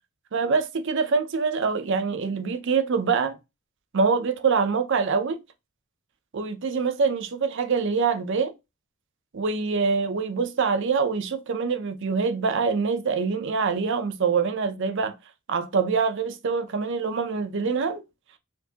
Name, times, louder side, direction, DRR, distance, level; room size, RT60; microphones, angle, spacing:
voice 1, 0.3-3.4 3.9-5.4 6.3-8.5 9.3-15.1 15.5-18.0, right 5 dB, 60° right, 0.5 m, -25 dB
4.4 x 2.7 x 2.8 m
head